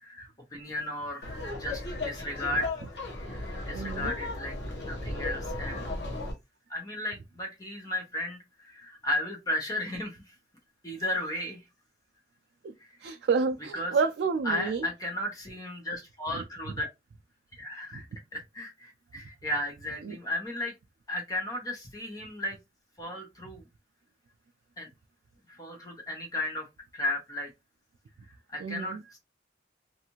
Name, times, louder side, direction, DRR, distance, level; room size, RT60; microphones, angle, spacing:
voice 1, 0.0-2.7 3.6-4.6 4.8-5.9 6.7-10.2 10.8-11.6 12.8-12.9 13.7-13.9 14.4-16.9 17.5-18.1 18.3-20.7 21.1-22.6 23.0-23.6 24.8-24.9 25.5-26.7 26.9-27.5 28.5-29.2, left 1 dB, 20° left, 0.7 m, -34 dB
Laughter, 1.2-6.3, left 2 dB, 75° left, 1.0 m, -35 dB
voice 2, 3.7-4.1 12.6-12.7 13.0-14.9 16.3-16.4 17.9-18.0 20.0-20.2 28.6-29.0, right 5 dB, 75° right, 0.3 m, -29 dB
2.6 x 2.4 x 2.9 m
head